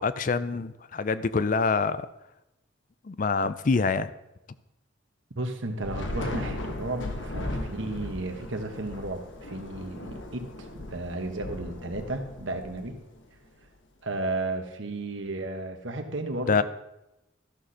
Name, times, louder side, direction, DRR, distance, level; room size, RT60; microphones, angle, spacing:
voice 1, 0.0-2.1 3.1-4.1 16.5-16.6, left 4 dB, 40° left, 14 dB, 0.4 m, -25 dB
voice 2, 5.3-13.0 14.0-16.6, right 2 dB, 70° right, 5 dB, 1.2 m, -33 dB
Thunder / Rain, 5.8-13.3, left 1 dB, 65° left, 1.1 m, -37 dB
13.5 x 6.3 x 4.2 m, 0.93 s
head